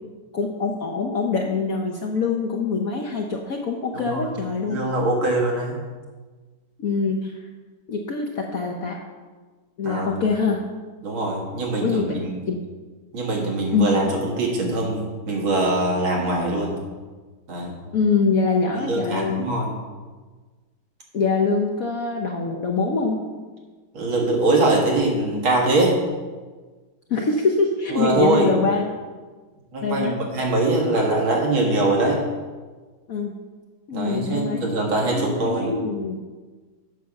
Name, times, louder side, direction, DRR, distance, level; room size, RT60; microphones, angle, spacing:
voice 1, 0.3-4.8 6.8-7.3 7.9-9.0 9.8-10.6 11.8-12.2 12.5-12.6 13.7-14.0 17.9-19.5 21.1-23.2 27.1-28.9 29.8-30.2 33.1-33.4 33.9-34.7 35.1-36.2, left 4 dB, 60° left, 1 dB, 0.9 m, -24 dB
voice 2, 4.7-5.8 9.8-10.2 11.0-12.4 13.1-16.8 17.5-17.8 18.7-19.8 23.9-26.0 27.9-28.5 29.7-32.2 33.9-35.7, right 2 dB, 75° right, -1 dB, 2.6 m, -22 dB
8.1 x 5.8 x 6.4 m, 1.4 s
omnidirectional pair, 2.3 m